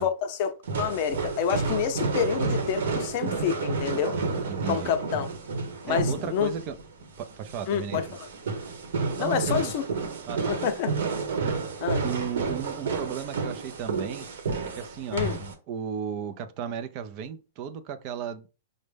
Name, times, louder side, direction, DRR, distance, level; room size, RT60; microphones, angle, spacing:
voice 1, 0.0-4.2 4.7-5.3 5.8-6.5 7.7-8.3 9.2-9.8 10.5-10.9 11.8-12.0 15.1-15.4, left 8 dB, 45° left, 0.6 m, -28 dB
sound 1, 0.6-15.5, right 4 dB, 80° right, 1.0 m, -30 dB
voice 2, 4.5-4.9 5.9-6.8 7.2-8.0 9.2-9.7 10.3-10.6 11.4-11.6 12.0-14.3 14.8-18.5, right 8 dB, 40° right, 0.5 m, -35 dB
5.1 x 2.1 x 3.3 m
hypercardioid pair, 145°, 0 cm